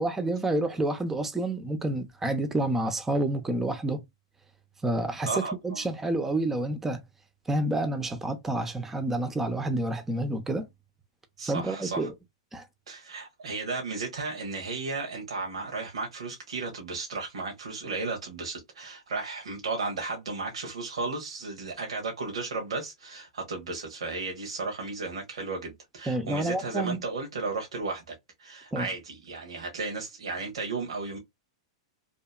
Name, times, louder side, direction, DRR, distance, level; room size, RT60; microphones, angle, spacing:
voice 1, 0.0-4.0 4.8-7.0 7.5-10.7 11.5-12.1 12.5-12.6 26.1-27.0 28.7-28.9, right 1 dB, 10° right, 0.5 m, -29 dB
voice 2, 5.3-5.9 11.4-12.1 12.9-31.2, right 3 dB, 90° right, 1.1 m, -34 dB
2.8 x 2.5 x 2.3 m
hypercardioid pair, 135°, 3 cm